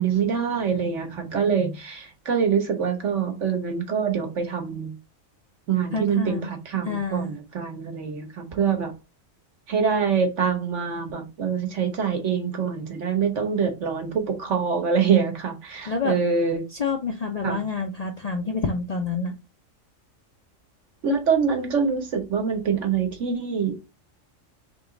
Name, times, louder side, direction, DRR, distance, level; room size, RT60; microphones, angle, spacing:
voice 1, 0.0-4.9 5.7-8.9 9.7-16.6 17.4-17.6 21.0-23.7, right 6 dB, 65° right, 1.4 m, -25 dB
voice 2, 5.9-6.5 6.9-7.3 15.9-16.2 16.7-19.3, left 4 dB, 50° left, 0.5 m, -28 dB
3.7 x 3.0 x 3.7 m
omnidirectional pair, 1.4 m